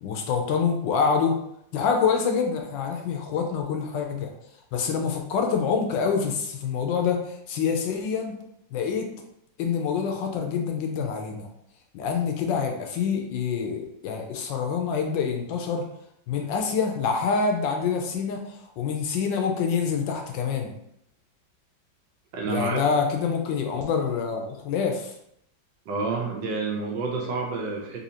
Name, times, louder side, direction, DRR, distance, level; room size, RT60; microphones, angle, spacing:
voice 1, 0.0-1.3 1.7-4.3 4.7-8.3 8.7-9.1 9.6-11.5 11.9-15.8 16.3-20.7 22.5-25.1, left 6 dB, 75° left, 3 dB, 1.2 m, -26 dB
voice 2, 22.3-22.8 25.9-28.0, right 4 dB, 75° right, -1 dB, 1.5 m, -29 dB
4.1 x 2.8 x 2.7 m, 0.74 s
omnidirectional pair, 2.1 m